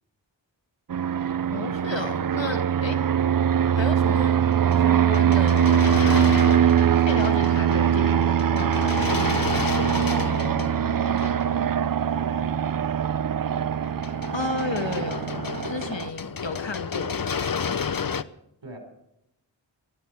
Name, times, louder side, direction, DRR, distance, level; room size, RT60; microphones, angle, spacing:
Fixed-wing aircraft airplane, 0.9-16.1, right 9 dB, 50° right, 0.5 m, -22 dB
voice 1, 1.5-3.1 3.7-4.5 4.8-6.6 7.0-9.5 14.3-15.3 15.7-17.2, left 3 dB, 80° left, 7 dB, 2.0 m, -33 dB
sound 1, 4.5-12.4 13.8-18.2, left 6 dB, 50° left, 0.8 m, -32 dB
voice 2, 10.2-12.8 13.1-13.7 18.6-18.8, right 1 dB, 80° right, 4 dB, 5.4 m, -42 dB
20.0 x 14.5 x 4.8 m, 0.81 s
wide cardioid pair, 50°, 44 cm